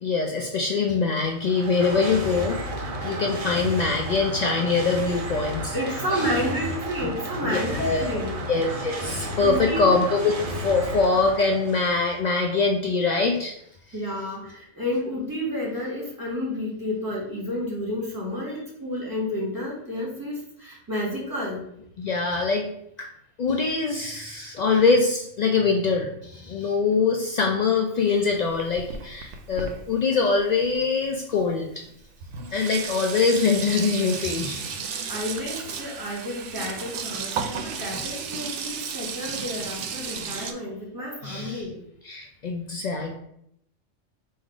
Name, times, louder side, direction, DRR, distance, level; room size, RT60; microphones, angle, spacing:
voice 1, 0.0-2.6 3.0-5.8 6.1-6.2 7.5-8.1 8.5-10.2 10.5-13.6 22.0-22.7 23.0-23.1 23.4-31.8 32.5-34.6 34.9-35.1 41.2-41.6 42.0-43.2, left 4 dB, 80° left, 2 dB, 0.3 m, -23 dB
sound 1, 1.3-12.1, right 1 dB, 35° right, 0.6 m, -32 dB
voice 2, 5.4-8.4 9.1-9.9 13.9-21.6 34.8-41.8, left 1 dB, 15° right, -4 dB, 1.4 m, -31 dB
Sink (filling or washing), 28.0-31.1 31.9-32.0 32.2-40.5, right 6 dB, 70° right, 0.9 m, -34 dB
3.8 x 2.6 x 4.7 m, 0.74 s
omnidirectional pair, 1.3 m